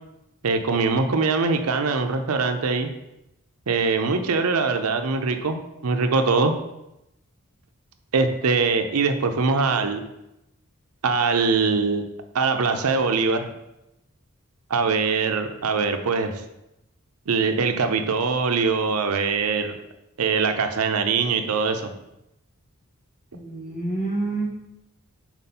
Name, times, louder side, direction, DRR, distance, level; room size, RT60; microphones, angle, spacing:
voice 1, 0.4-2.9 3.7-6.5 8.1-10.0 11.0-12.0 12.3-13.5 14.7-16.3 17.3-19.8 20.2-21.9, right 4 dB, 85° right, 7 dB, 0.6 m, -22 dB
voice 2, 23.3-24.5, right 2 dB, 35° left, -3 dB, 1.7 m, -28 dB
4.4 x 4.2 x 5.5 m, 0.88 s
head